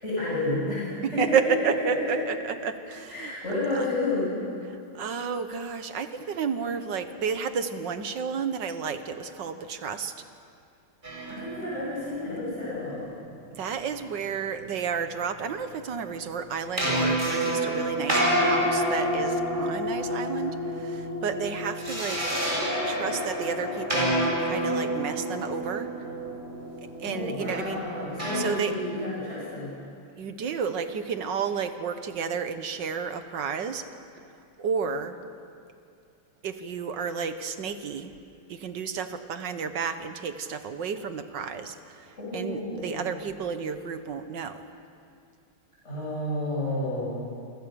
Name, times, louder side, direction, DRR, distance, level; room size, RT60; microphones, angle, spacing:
voice 1, 0.0-1.7 2.1-2.2 3.1-4.3 11.3-13.1 27.0-29.7 42.2-43.0 45.8-47.1, left 2 dB, 30° left, -7 dB, 8.3 m, -30 dB
voice 2, 1.0-3.3 3.7-3.8 4.7-10.1 11.2-11.3 13.5-22.2 22.8-25.9 27.0-27.8 28.3-28.7 30.2-33.8 34.6-35.2 36.4-38.1 38.5-44.6, right 6 dB, 60° right, 9 dB, 1.7 m, -31 dB
sound 1, 11.0-13.1 16.8-28.4, equal, 20° right, 7.2 m, -29 dB
29.0 x 24.5 x 6.9 m, 2.5 s
omnidirectional pair, 2.4 m